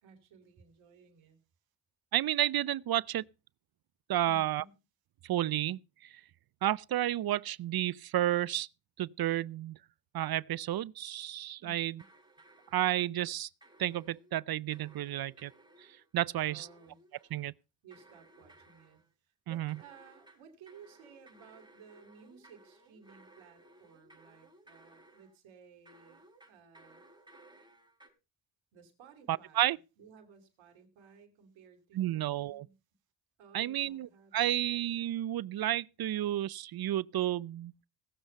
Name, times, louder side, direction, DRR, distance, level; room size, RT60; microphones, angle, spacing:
voice 1, 0.0-1.4 4.2-4.8 11.6-12.0 16.5-17.0 17.8-26.2 26.5-27.0 28.7-32.7 33.4-34.6, right 5 dB, 85° right, 2.9 m, -57 dB
voice 2, 2.1-3.2 4.1-4.6 5.2-5.8 6.6-8.7 9.0-9.8 10.1-11.9 12.7-13.5 13.8-15.5 16.1-16.7 17.3-17.5 19.5-19.8 29.3-29.8 32.0-32.7 33.5-34.1 34.3-37.7, right 13 dB, 55° right, 0.6 m, -31 dB
sound 1, 12.0-13.4 13.6-14.3 14.7-16.1 16.4-17.5 17.9-19.1 19.7-25.4 25.9-28.1, right 2 dB, 10° right, 5.1 m, -60 dB
18.0 x 7.2 x 5.3 m
supercardioid pair, 50°, 46 cm